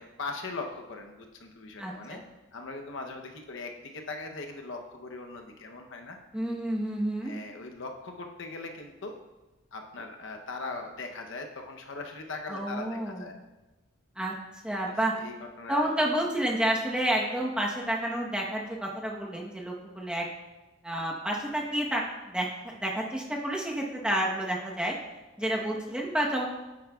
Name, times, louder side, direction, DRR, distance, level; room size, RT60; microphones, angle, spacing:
voice 1, 0.0-2.2 2.5-6.2 7.2-9.2 9.7-13.4 14.7-16.1 25.4-25.8, left 3 dB, 65° left, 3 dB, 0.8 m, -40 dB
voice 2, 1.8-2.2 6.3-7.3 12.5-13.3 14.2-14.3 14.6-15.1 15.7-20.3 20.8-24.9 25.4-26.5, right 1 dB, 5° right, -2 dB, 1.0 m, -30 dB
9.1 x 8.6 x 2.4 m, 1.1 s
head